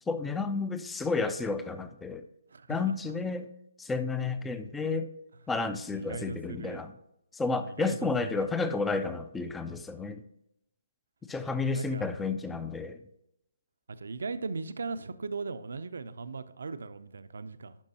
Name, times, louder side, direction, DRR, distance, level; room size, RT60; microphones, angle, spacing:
voice 1, 0.1-2.3 2.7-3.5 3.8-5.1 5.5-6.9 7.3-10.2 11.2-13.0, left 4 dB, 5° left, 11 dB, 0.4 m, -31 dB
voice 2, 5.9-6.8 7.6-8.1 8.3-8.5 11.5-12.1 14.0-17.8, right 4 dB, 70° right, 11 dB, 0.6 m, -38 dB
11.5 x 5.3 x 2.9 m, 0.82 s
hypercardioid pair, 150°, 0 cm